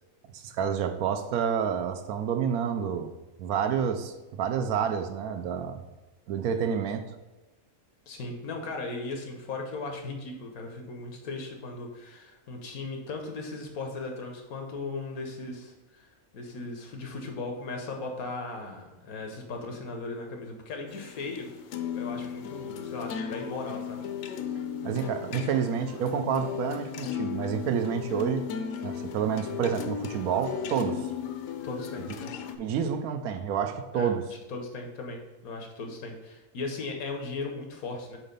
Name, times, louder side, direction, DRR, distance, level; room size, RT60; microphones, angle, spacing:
voice 1, 0.3-3.1 3.4-5.8 6.3-7.0 24.8-28.5 28.8-31.0 32.6-34.2, right 7 dB, 85° right, 8 dB, 1.1 m, -29 dB
voice 2, 8.1-21.5 21.9-24.0 31.6-32.3 33.9-34.1 34.5-38.2, left 3 dB, 90° left, 3 dB, 1.5 m, -37 dB
sound 1, 20.9-32.6, left 8 dB, 70° left, 0.9 m, -36 dB
4.8 x 4.2 x 5.3 m, 1.1 s
omnidirectional pair, 1.5 m